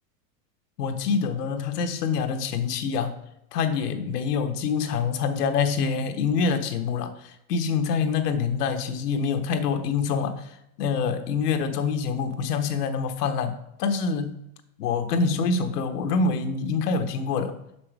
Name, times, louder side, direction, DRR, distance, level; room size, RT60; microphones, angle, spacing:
voice 1, 0.8-3.2 3.5-14.4 14.8-17.6, left 5 dB, 75° left, 7 dB, 1.2 m, -26 dB
6.2 x 5.9 x 4.7 m, 0.80 s
supercardioid pair, 145°, 47 cm